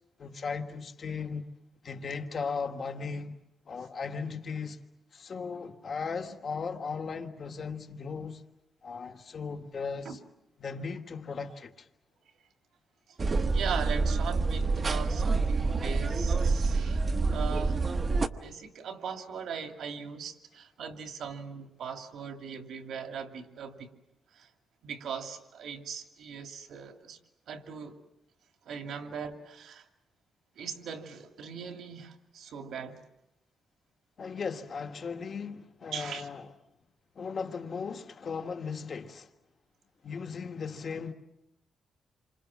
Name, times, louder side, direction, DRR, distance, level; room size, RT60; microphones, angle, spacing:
voice 1, 0.2-1.4 1.8-3.4 3.7-4.8 5.1-8.4 8.8-10.2 10.6-11.9 34.2-36.4 37.1-39.3 40.0-41.1, left 5 dB, 40° left, 1.6 m, -37 dB
sound 1, 13.2-18.3, right 3 dB, 30° right, 1.0 m, -27 dB
voice 2, 13.5-17.0 17.3-17.8 18.4-23.9 24.3-24.5 24.8-27.2 27.5-28.0 28.6-29.9 30.6-33.0 35.9-36.3, right 6 dB, 75° right, 2.6 m, -39 dB
28.5 x 25.5 x 7.4 m
wide cardioid pair, 180°, 0 cm